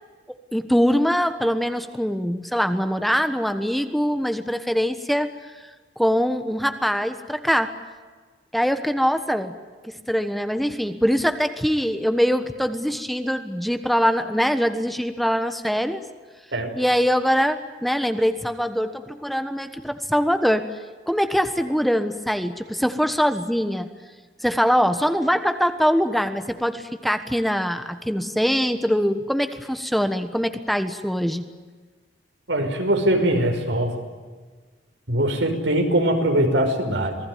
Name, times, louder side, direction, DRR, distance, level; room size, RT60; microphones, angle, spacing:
voice 1, 0.5-5.3 6.0-7.7 8.5-9.5 9.8-16.0 16.7-20.6 21.1-23.9 24.4-31.5, equal, ahead, 8 dB, 1.3 m, -23 dB
voice 2, 32.5-33.9 35.1-37.2, right 1 dB, 85° right, 4 dB, 5.5 m, -21 dB
27.5 x 19.5 x 9.4 m, 1.4 s
head